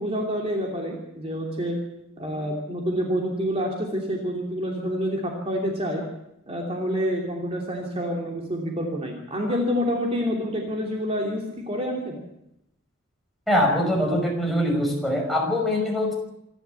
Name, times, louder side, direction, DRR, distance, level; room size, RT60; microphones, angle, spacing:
voice 1, 0.0-1.8 2.2-6.0 6.5-12.2, equal, 30° right, 0 dB, 3.0 m, -27 dB
voice 2, 13.5-16.1, left 1 dB, ahead, -1 dB, 5.6 m, -23 dB
27.0 x 12.0 x 8.3 m, 0.84 s
head